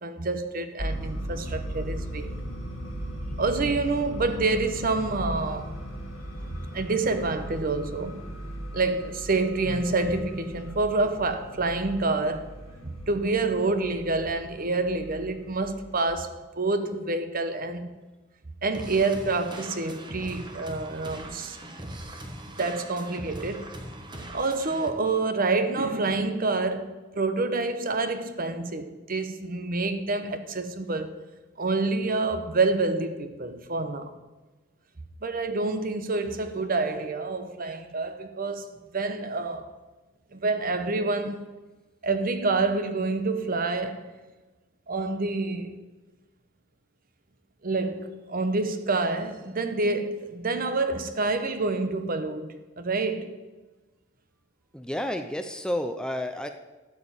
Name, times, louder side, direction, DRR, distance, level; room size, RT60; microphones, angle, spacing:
voice 1, 0.0-2.3 3.4-5.7 6.7-8.3 8.7-12.5 12.8-18.0 18.6-21.6 22.6-23.7 24.3-31.2 31.6-34.1 35.2-39.7 40.3-41.4 42.0-44.1 44.9-45.7 47.6-53.3, right 3 dB, 45° right, 0.9 m, -27 dB
sound 1, 0.8-16.1, equal, 90° left, 2.2 m, -37 dB
sound 2, 18.7-24.9, right 1 dB, 25° right, 1.2 m, -40 dB
voice 2, 54.7-56.5, left 1 dB, 5° left, 0.5 m, -30 dB
12.5 x 5.1 x 8.9 m
head